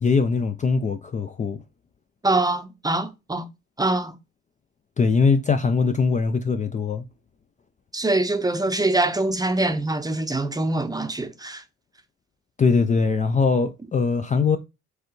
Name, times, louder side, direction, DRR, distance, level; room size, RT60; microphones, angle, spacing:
voice 1, 0.0-1.6 5.0-7.1 12.6-14.6, left 4 dB, 25° left, 0.4 m, -21 dB
voice 2, 2.2-3.4 3.8-4.1 7.9-11.6, right 2 dB, 15° right, 0.7 m, -24 dB
4.7 x 3.3 x 3.1 m
cardioid pair, 90°, 30 cm